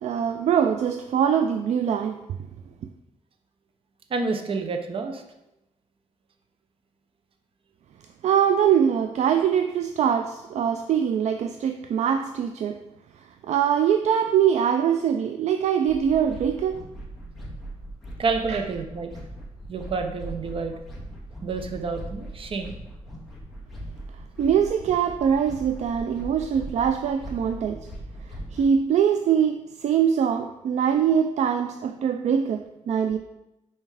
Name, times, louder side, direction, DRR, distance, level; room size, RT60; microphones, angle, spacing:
voice 1, 0.0-2.2 8.2-12.8 13.4-16.8 18.5-18.6 24.4-27.9 28.5-33.2, right 8 dB, 65° right, 7 dB, 0.4 m, -23 dB
voice 2, 4.1-5.2 18.2-19.1 19.7-20.7 21.4-22.7, right 4 dB, 45° right, 6 dB, 0.7 m, -29 dB
sound 1, 15.9-28.7, right 1 dB, ahead, 1.7 m, -40 dB
5.5 x 4.3 x 4.8 m, 0.92 s
wide cardioid pair, 130°, 13 cm